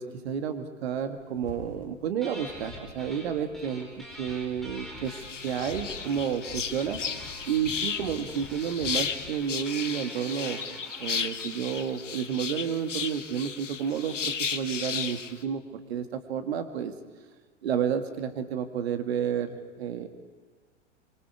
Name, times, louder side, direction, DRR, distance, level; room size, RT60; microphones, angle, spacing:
voice 1, 0.0-5.2 5.4-7.0 7.5-10.6 11.0-15.6 15.9-16.9 17.6-20.1, right 8 dB, 60° right, 8 dB, 1.9 m, -31 dB
sound 1, 1.2-9.9, left 5 dB, 40° left, 4.0 m, -47 dB
sound 2, 2.2-3.3 3.5-11.8, equal, ahead, 5.2 m, -46 dB
sound 3, 5.1-15.3, left 6 dB, 75° left, 1.0 m, -34 dB
25.0 x 24.5 x 4.7 m, 1.4 s
figure-of-eight pair, 95°, 37 cm